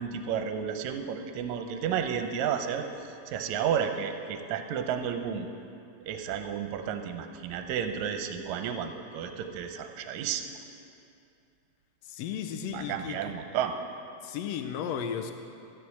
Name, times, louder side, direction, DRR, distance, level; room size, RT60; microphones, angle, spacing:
voice 1, 0.0-2.9 3.3-5.5 6.1-10.5 12.7-13.7, right 8 dB, 75° right, 7 dB, 1.9 m, -32 dB
voice 2, 12.0-13.3 14.2-15.3, left 8 dB, 80° left, 6 dB, 1.5 m, -34 dB
14.5 x 4.9 x 7.1 m, 2.5 s
omnidirectional pair, 3.5 m